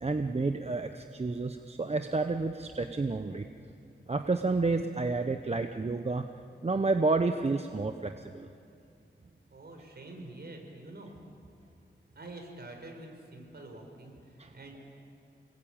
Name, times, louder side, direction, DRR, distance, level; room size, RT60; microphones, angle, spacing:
voice 1, 0.0-3.5 4.1-6.2 6.6-8.5 14.4-14.5, right 3 dB, 35° right, 7 dB, 0.9 m, -30 dB
voice 2, 9.5-11.1 12.1-14.8, right 2 dB, 55° right, 2 dB, 5.0 m, -46 dB
28.5 x 20.5 x 8.9 m, 2.5 s
wide cardioid pair, 110°, 20 cm